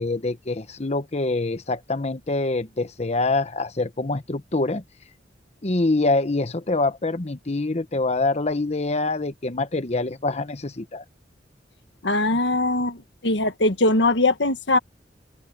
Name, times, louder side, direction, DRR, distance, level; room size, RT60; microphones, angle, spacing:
voice 1, 0.0-4.8 5.6-11.0, left 2 dB, 40° left, 1.0 m, -25 dB
voice 2, 12.0-13.0 13.2-14.8, left 2 dB, 85° left, 1.5 m, -21 dB
open air
head